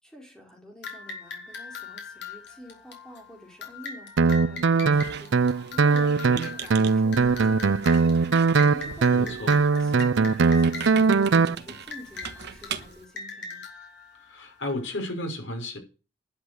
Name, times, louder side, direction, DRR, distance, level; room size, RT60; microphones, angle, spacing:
voice 1, 0.0-8.2 8.5-9.3 9.7-13.6, equal, 5° left, 4.6 m, -47 dB
sound 1, 0.8-15.0, left 4 dB, 65° left, 4.0 m, -41 dB
Guitar, 4.2-11.5, right 4 dB, 85° right, 0.6 m, -21 dB
Squeak, 4.9-13.0, right 7 dB, 60° right, 1.3 m, -41 dB
voice 2, 9.1-9.6 14.2-15.8, left 1 dB, 80° left, 5.7 m, -33 dB
11.5 x 8.5 x 8.0 m
head